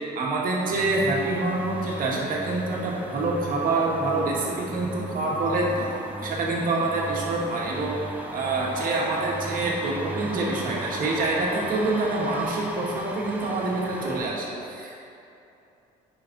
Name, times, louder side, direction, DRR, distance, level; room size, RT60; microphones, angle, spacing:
voice 1, 0.1-5.8 6.2-7.9 8.3-15.0, right 2 dB, 55° right, -3 dB, 1.6 m, -26 dB
sound 1, 0.7-14.3, right 1 dB, 10° right, 0.9 m, -36 dB
8.8 x 5.9 x 3.8 m, 2.7 s
cardioid pair, 110°, 17 cm